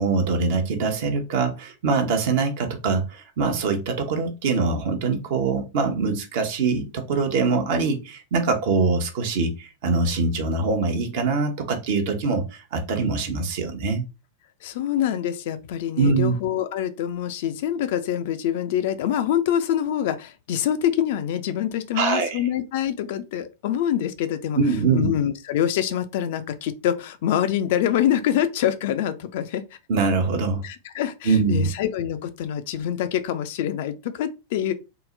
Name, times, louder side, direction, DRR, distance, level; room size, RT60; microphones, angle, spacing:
voice 1, 0.0-14.0 16.0-16.3 21.9-22.4 24.6-25.1 29.9-30.6 31.2-31.7, right 4 dB, 50° right, 0.8 m, -23 dB
voice 2, 14.6-24.6 24.9-29.8 30.6-34.7, left 10 dB, 50° left, 0.4 m, -25 dB
3.7 x 2.1 x 3.7 m
figure-of-eight pair, 90°, 0 cm